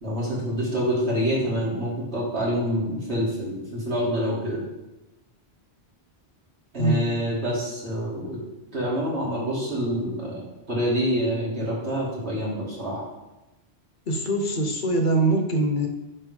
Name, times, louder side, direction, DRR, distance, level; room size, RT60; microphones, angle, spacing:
voice 1, 0.0-4.6 6.7-8.4 8.7-13.0, equal, 70° right, -6 dB, 2.6 m, -26 dB
voice 2, 6.8-7.1 14.1-15.9, right 2 dB, 50° left, 4 dB, 1.0 m, -23 dB
9.7 x 3.5 x 5.0 m, 1.0 s
omnidirectional pair, 1.1 m